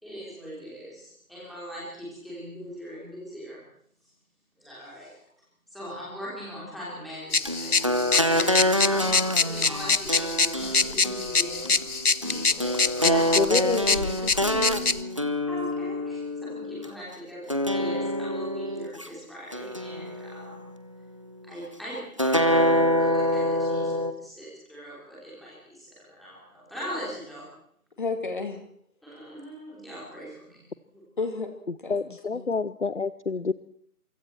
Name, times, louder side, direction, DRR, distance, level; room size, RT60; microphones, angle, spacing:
voice 1, 0.0-3.6 4.6-5.1 5.7-11.7 12.2-12.5 13.1-13.2 15.5-20.7 21.4-23.9 24.2-27.5 29.0-30.6 30.9-31.0, equal, ahead, -8 dB, 3.3 m, -40 dB
sound 1, 7.3-15.0, left 4 dB, 85° left, 1.1 m, -25 dB
sound 2, 7.5-16.9 17.5-19.1 19.5-20.6 22.2-24.1, equal, 20° right, 0.9 m, -26 dB
voice 2, 12.3-13.0 13.6-15.4 28.0-28.6 31.2-31.5 31.8-32.0 32.3-32.4, left 3 dB, 35° left, 6 dB, 2.4 m, -34 dB
voice 3, 13.0-14.0 31.7-33.5, left 4 dB, 50° left, 15 dB, 0.8 m, -28 dB
28.5 x 25.0 x 4.5 m, 0.66 s
figure-of-eight pair, 160°, 44 cm